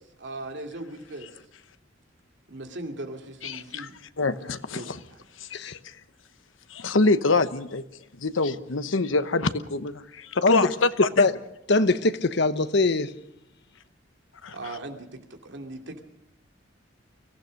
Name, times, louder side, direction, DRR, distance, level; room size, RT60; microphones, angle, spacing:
voice 1, 0.2-1.3 2.5-4.0 4.7-5.2 14.5-16.0, right 2 dB, 65° right, 2.7 m, -39 dB
voice 2, 3.4-3.9 4.2-5.0 5.4-5.8 6.7-7.8 8.2-11.3 14.4-14.5, left 3 dB, 90° left, 1.0 m, -25 dB
voice 3, 11.0-11.3 11.7-13.1, left 3 dB, 60° left, 1.0 m, -22 dB
24.5 x 16.0 x 6.5 m
head